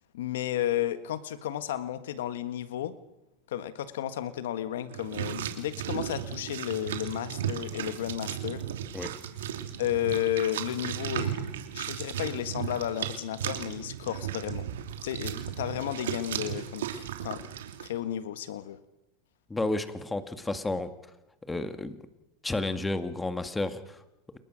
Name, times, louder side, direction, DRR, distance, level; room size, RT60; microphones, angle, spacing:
voice 1, 0.1-2.9 3.5-8.6 9.8-14.7 15.0-17.5 17.8-18.8, left 11 dB, 85° left, 12 dB, 1.5 m, -33 dB
sound 1, 4.9-17.9, right 10 dB, 90° right, 3.0 m, -35 dB
voice 2, 19.5-20.9 21.5-22.0 22.4-24.0, left 2 dB, 10° left, 10 dB, 2.0 m, -31 dB
29.0 x 22.0 x 6.4 m, 0.92 s
supercardioid pair, 125°, 0 cm